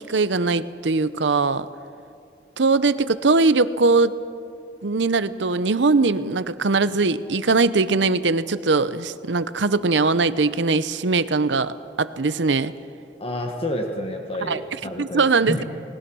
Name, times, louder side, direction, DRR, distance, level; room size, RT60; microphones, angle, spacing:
voice 1, 0.1-1.7 2.6-4.2 4.8-12.7 14.5-14.6 15.0-15.6, right 3 dB, 85° right, 14 dB, 0.8 m, -21 dB
voice 2, 13.2-15.6, left 1 dB, 35° left, 3 dB, 1.5 m, -29 dB
29.5 x 20.0 x 6.3 m, 2.5 s
head